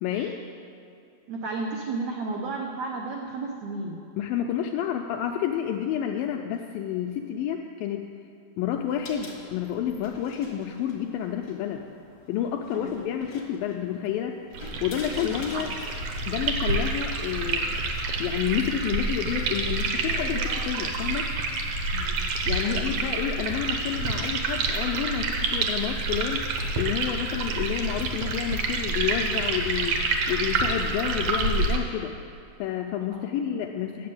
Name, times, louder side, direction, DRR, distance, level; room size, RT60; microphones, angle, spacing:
voice 1, 0.0-0.4 4.2-8.1 8.6-11.8 12.3-14.4 14.8-15.7 16.3-17.8 18.2-21.3 22.5-26.4 26.8-30.0 30.3-32.2 32.6-34.1, left 10 dB, 85° left, 3 dB, 2.0 m, -29 dB
voice 2, 1.3-4.0 12.7-13.0 15.5-15.6 21.9-22.3 22.6-23.0 33.1-33.3, right 3 dB, 90° right, 0 dB, 1.5 m, -33 dB
sound 1, 8.8-17.5, left 3 dB, 65° left, 1.1 m, -46 dB
sound 2, 14.5-31.8, right 3 dB, 70° right, 1.7 m, -28 dB
10.0 x 7.5 x 7.6 m, 2.7 s
omnidirectional pair, 4.5 m